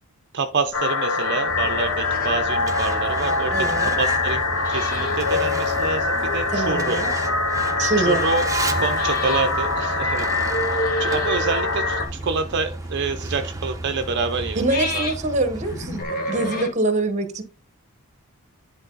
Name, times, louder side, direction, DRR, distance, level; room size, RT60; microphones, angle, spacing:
voice 1, 0.3-4.4 4.7-7.0 8.0-8.5 8.8-10.3 11.0-15.1, right 4 dB, 50° right, 7 dB, 0.5 m, -27 dB
sound 1, 0.5-16.7, left 2 dB, 40° left, 1.9 m, -37 dB
sound 2, 0.7-12.1, left 3 dB, 65° left, 1.5 m, -23 dB
Truck, 1.5-16.0, right 2 dB, 15° right, 0.8 m, -33 dB
voice 2, 3.5-4.0 6.5-7.1 7.8-8.2 14.5-16.0 16.3-17.4, right 2 dB, 30° right, 9 dB, 1.2 m, -24 dB
10.5 x 3.8 x 3.9 m, 0.36 s
head